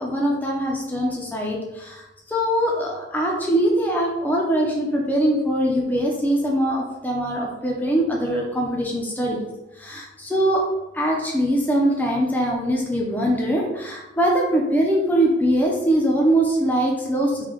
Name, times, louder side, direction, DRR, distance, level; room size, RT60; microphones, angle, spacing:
voice 1, 0.0-2.0 2.3-9.4 9.8-10.6 10.9-17.5, right 1 dB, 10° left, -2 dB, 0.6 m, -22 dB
3.4 x 2.4 x 3.7 m, 1.0 s
head